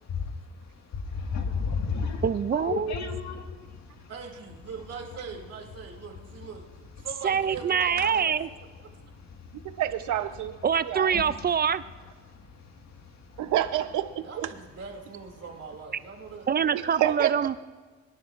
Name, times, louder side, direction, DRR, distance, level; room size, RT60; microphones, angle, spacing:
voice 1, 0.1-4.1 7.0-7.1 8.9-9.8 11.1-11.5 12.2-13.5, left 5 dB, 65° left, 4 dB, 1.8 m, -35 dB
voice 2, 2.2-2.9 7.2-8.5 10.6-11.8 16.5-17.5, right 7 dB, 35° right, 15 dB, 0.4 m, -25 dB
voice 3, 4.1-6.7 7.0-8.4 14.2-16.5, right 5 dB, 55° right, 1 dB, 2.6 m, -41 dB
voice 4, 9.8-10.5 10.8-11.2 13.4-14.1 14.4-14.5 16.7-17.3, right 12 dB, 75° right, 11 dB, 0.8 m, -27 dB
23.5 x 11.0 x 2.5 m, 1.4 s
cardioid pair, 90°, 30 cm